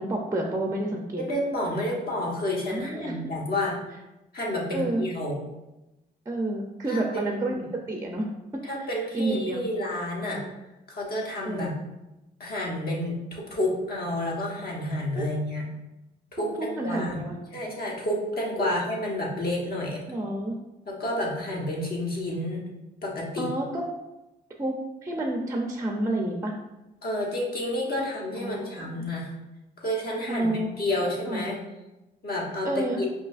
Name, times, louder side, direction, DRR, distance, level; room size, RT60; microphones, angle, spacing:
voice 1, 0.0-1.2 2.7-3.1 4.7-5.0 6.3-7.6 7.9-8.3 9.1-9.6 10.2-10.5 11.4-11.8 15.1-15.3 16.4-17.4 18.6-18.7 20.1-20.6 23.4-23.8 24.6-24.8 25.0-26.5 28.4-29.0 30.3-30.7 31.3-31.4 32.6-33.0, right 1 dB, 15° right, 2 dB, 0.5 m, -29 dB
voice 2, 1.1-3.8 4.3-5.4 6.9-7.6 8.6-10.4 10.9-11.7 12.4-15.6 16.3-17.2 17.5-20.0 20.9-22.6 23.0-23.5 27.0-29.3 29.8-31.6 32.2-33.1, left 1 dB, 50° left, -2 dB, 1.1 m, -30 dB
4.8 x 2.8 x 2.4 m, 0.99 s
cardioid pair, 90°, 20 cm